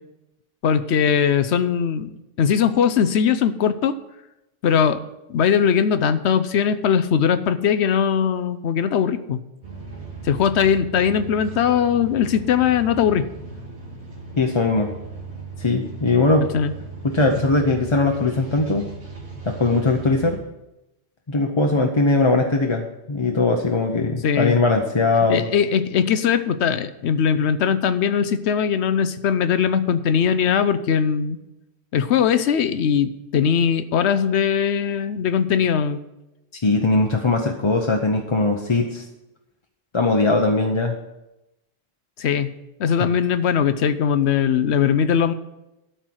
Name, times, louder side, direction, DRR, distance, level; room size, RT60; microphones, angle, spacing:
voice 1, 0.6-4.0 4.6-5.0 5.3-9.4 10.2-13.2 16.5-16.7 24.2-24.6 25.3-31.4 31.9-36.0 42.2-42.5 42.8-45.3, left 7 dB, 85° left, 12 dB, 1.0 m, -20 dB
sound 1, 9.6-20.4, right 3 dB, 90° right, 2.4 m, -37 dB
voice 2, 14.4-14.9 15.6-16.5 17.0-18.8 19.4-20.4 21.3-25.5 36.6-39.0 39.9-40.9 43.0-43.1, left 3 dB, 30° left, 2 dB, 0.8 m, -20 dB
12.5 x 4.5 x 7.7 m, 0.93 s
omnidirectional pair, 1.1 m